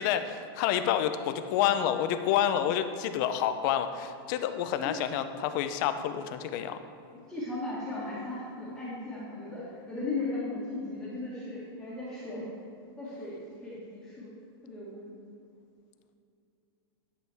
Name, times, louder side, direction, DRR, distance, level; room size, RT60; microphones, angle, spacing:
voice 1, 0.0-6.8, left 10 dB, 50° left, 9 dB, 0.5 m, -28 dB
voice 2, 7.1-12.5 13.0-14.3 14.6-15.1, left 2 dB, 5° left, -10 dB, 1.6 m, -37 dB
11.0 x 6.1 x 3.4 m, 2.6 s
supercardioid pair, 150°, 14 cm